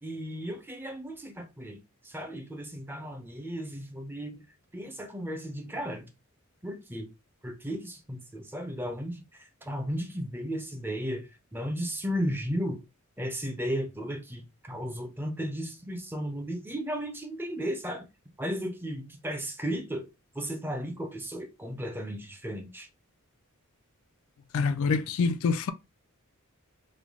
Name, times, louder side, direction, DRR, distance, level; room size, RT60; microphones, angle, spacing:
voice 1, 0.0-4.4 4.7-6.1 6.6-7.1 7.4-12.8 13.2-18.1 18.4-20.1 20.3-22.9, equal, 10° right, 0.6 m, -35 dB
voice 2, 24.5-25.7, left 4 dB, 65° left, 0.4 m, -26 dB
3.3 x 2.2 x 3.5 m
head